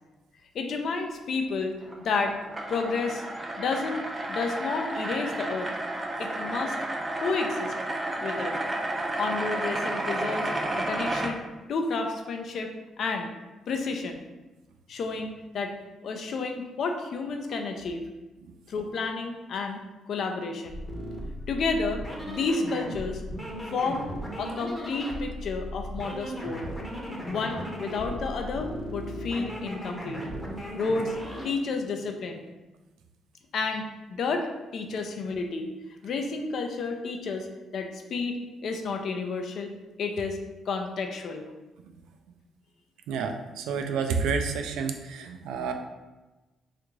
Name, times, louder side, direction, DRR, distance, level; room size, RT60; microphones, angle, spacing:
voice 1, 0.5-1.7 2.0-2.4 2.7-3.2 3.6-5.7 6.2-6.8 7.2-7.7 8.2-8.6 9.2-11.4 11.7-12.7 13.0-13.3 13.7-14.2 14.9-15.8 16.0-18.0 18.7-20.8 21.5-23.2 23.7-24.1 24.4-26.7 27.3-30.3 30.8-31.1 31.4-32.4 33.5-35.7 36.0-37.5 37.7-39.7 40.0-40.4 40.7-41.4, left 4 dB, 65° left, 4 dB, 0.4 m, -31 dB
sound 1, 1.8-11.3, right 1 dB, 20° right, 0.5 m, -31 dB
sound 2, 20.7-31.5, equal, 5° left, 0.7 m, -37 dB
voice 2, 43.1-45.7, right 5 dB, 90° right, 5 dB, 0.3 m, -29 dB
3.4 x 2.5 x 3.0 m, 1.1 s
cardioid pair, 90°, 0 cm